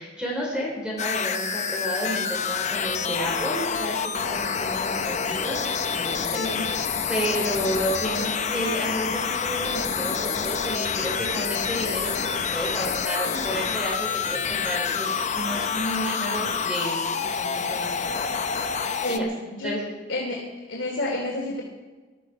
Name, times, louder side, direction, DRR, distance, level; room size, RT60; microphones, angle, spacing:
voice 1, 0.0-6.8 7.1-18.4 19.1-19.2 19.6-19.8, equal, 5° right, -3 dB, 3.9 m, -31 dB
sound 1, 1.0-19.2, left 6 dB, 40° left, 0.8 m, -27 dB
voice 2, 6.4-6.7 19.0-19.7 20.1-20.4 20.7-21.6, left 2 dB, 70° left, -3 dB, 2.9 m, -29 dB
20.0 x 13.0 x 4.9 m, 1.3 s
head